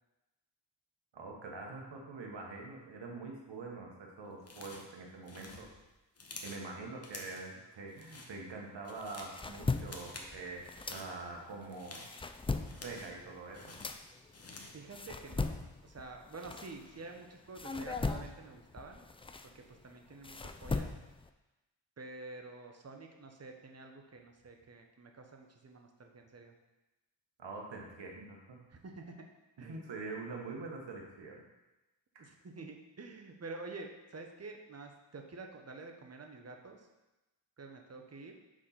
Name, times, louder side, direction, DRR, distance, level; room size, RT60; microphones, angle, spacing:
voice 1, 1.1-5.7 6.4-12.1 12.7-13.8 27.4-28.6 29.6-31.4 32.1-32.3, right 3 dB, 65° right, 0 dB, 1.4 m, -45 dB
sound 1, 4.4-4.9 5.2-6.7 7.0-7.5 7.9-8.3 8.7-9.4 9.8-10.3 10.6-11.1 11.6-13.2 13.5-14.8, left 3 dB, 30° left, 1.1 m, -50 dB
sound 2, 9.0-11.5 11.9-17.2 17.6-21.3, left 3 dB, 15° left, 0.3 m, -39 dB
voice 2, 14.7-19.0 19.5-20.9 22.0-26.5 28.7-29.3 29.6-29.9 32.2-36.9 37.6-38.4, right 3 dB, 35° right, 3 dB, 1.0 m, -49 dB
4.9 x 4.2 x 5.8 m, 1.0 s
cardioid pair, 50°, 46 cm